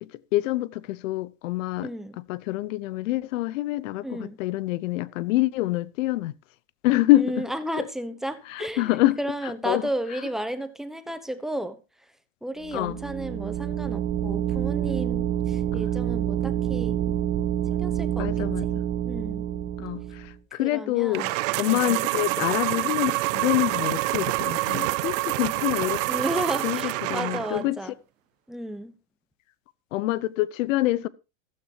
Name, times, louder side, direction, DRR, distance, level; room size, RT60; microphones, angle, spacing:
voice 1, 0.0-1.9 2.2-6.3 6.8-7.5 7.8-7.9 8.5-9.2 9.4-9.8 12.7-13.0 18.2-18.8 19.8-26.0 26.6-27.8 29.9-31.1, left 17 dB, 70° left, 0.9 m, -26 dB
voice 2, 1.8-2.2 4.0-4.4 7.1-11.8 12.4-17.0 17.7-18.7 19.0-19.5 20.6-21.3 21.6-22.0 26.1-27.9 28.5-28.9, right 1 dB, ahead, 1.0 m, -33 dB
sound 1, 12.6-20.3, right 11 dB, 35° right, 1.5 m, -27 dB
sound 2, 21.1-27.7, right 19 dB, 70° right, 0.6 m, -27 dB
15.0 x 12.5 x 2.9 m
supercardioid pair, 130°, 40 cm